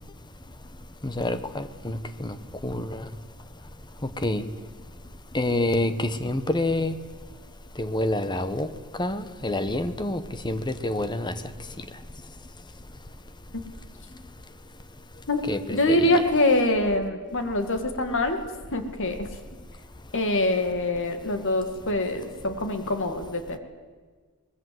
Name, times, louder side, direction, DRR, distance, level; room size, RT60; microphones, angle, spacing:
voice 1, 1.0-2.4 2.6-3.0 4.2-4.4 5.3-6.9 7.8-8.7 9.0-11.3 15.4-16.2, left 1 dB, 20° left, 11 dB, 1.1 m, -27 dB
voice 2, 15.7-18.4 18.7-19.3 20.1-23.6, left 1 dB, 60° left, 7 dB, 2.2 m, -24 dB
23.5 x 20.0 x 7.9 m, 1.5 s
head